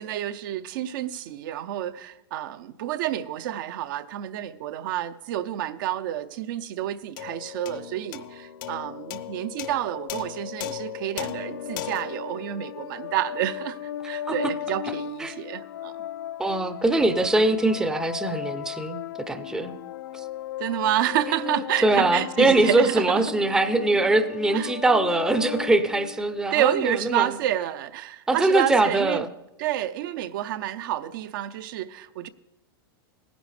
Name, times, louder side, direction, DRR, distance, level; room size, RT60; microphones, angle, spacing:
voice 1, 0.0-15.9 20.6-23.2 24.5-24.7 26.5-29.2 29.6-32.3, right 12 dB, 60° right, 0.5 m, -29 dB
sound 1, 7.2-13.8, left 10 dB, 60° left, 0.7 m, -37 dB
sound 2, 11.3-26.7, left 12 dB, 85° left, 0.4 m, -36 dB
voice 2, 16.4-19.0 19.3-19.8 20.1-20.2 21.3-27.3 28.3-29.3, right 2 dB, 5° right, 0.5 m, -22 dB
17.0 x 10.0 x 3.3 m
supercardioid pair, 140°, 12 cm